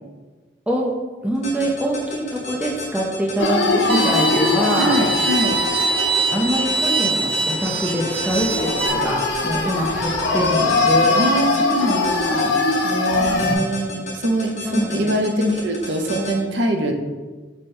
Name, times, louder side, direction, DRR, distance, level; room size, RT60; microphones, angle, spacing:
voice 1, 1.2-5.0 6.3-11.2 14.6-15.5, right 1 dB, 5° right, -2 dB, 0.5 m, -24 dB
sound 1, 1.3-16.3, left 3 dB, 40° left, 1.0 m, -33 dB
sound 2, 3.4-7.4 7.8-7.9 8.3-13.6, left 3 dB, 80° left, 0.5 m, -22 dB
Bowed string instrument, 3.9-8.9, right 2 dB, 30° right, 0.8 m, -23 dB
voice 2, 4.8-5.6 11.1-12.6 12.8-16.9, right 1 dB, 70° right, 3 dB, 0.5 m, -23 dB
4.9 x 2.2 x 4.3 m, 1.3 s
head